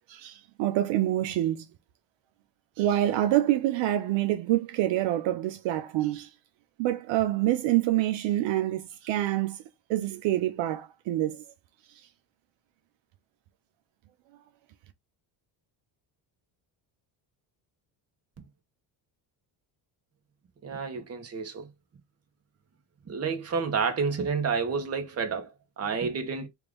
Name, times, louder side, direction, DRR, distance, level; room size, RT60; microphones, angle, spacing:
voice 1, 0.1-1.7 2.8-6.3 6.8-9.6 9.9-11.4, right 14 dB, 70° right, 0.7 m, -26 dB
voice 2, 20.6-21.7 23.1-26.5, right 5 dB, 30° right, 1.1 m, -30 dB
3.2 x 2.5 x 3.5 m
cardioid pair, 120°, 46 cm